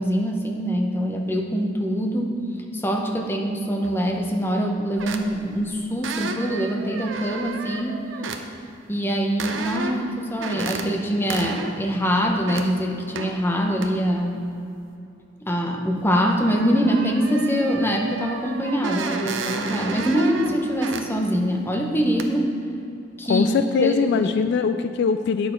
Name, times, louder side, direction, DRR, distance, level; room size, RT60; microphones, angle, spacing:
voice 1, 0.0-2.4 2.7-8.0 8.9-14.4 15.4-22.5 23.2-23.5 23.8-24.1, equal, 10° left, 1 dB, 0.8 m, -24 dB
sound 1, 3.8-4.0 5.0-5.5 6.0-8.4 9.4-10.1 10.4-10.9 11.3-11.8 12.2-12.7 13.2-13.4 13.8-13.9 16.0-16.1 16.4-21.1 21.5-21.6 22.2-22.3, right 4 dB, 70° right, 0.6 m, -32 dB
voice 2, 23.3-25.5, left 5 dB, 60° left, 9 dB, 0.3 m, -22 dB
9.4 x 6.4 x 4.5 m, 2.6 s
head